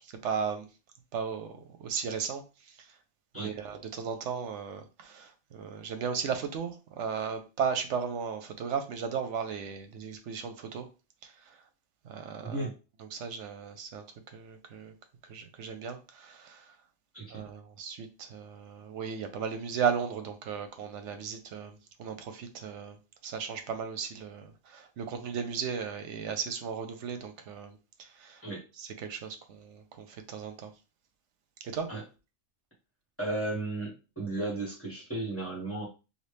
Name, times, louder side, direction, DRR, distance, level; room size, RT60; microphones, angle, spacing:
voice 1, 0.2-0.7 1.1-2.4 3.4-10.9 12.1-12.7 13.0-14.0 14.3-14.9 15.3-16.6 17.3-23.0 23.2-27.8 28.2-28.4 28.8-30.7 31.6-31.9, right 6 dB, 80° right, 1.0 m, -35 dB
voice 2, 12.4-12.7 17.1-17.4 28.4-28.6 31.9-32.0 33.2-35.9, right 2 dB, 10° left, 1.2 m, -34 dB
3.2 x 2.5 x 3.3 m
omnidirectional pair, 1.2 m